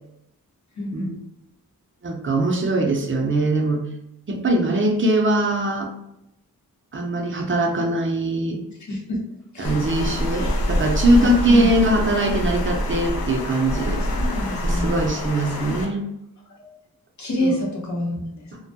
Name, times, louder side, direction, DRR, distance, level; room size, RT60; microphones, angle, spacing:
voice 1, 0.8-1.2 8.9-9.2 9.5-10.6 11.1-11.7 13.9-15.0 16.6-16.8 17.2-18.5, equal, 50° left, -2 dB, 0.8 m, -28 dB
voice 2, 2.0-3.9 4.3-5.9 6.9-8.6 9.6-14.0 14.6-16.0 17.4-17.5, right 1 dB, 35° right, 2 dB, 0.5 m, -21 dB
Water, 9.6-15.8, left 1 dB, 75° left, 0.5 m, -25 dB
2.2 x 2.1 x 2.7 m, 0.83 s
cardioid pair, 60°, 36 cm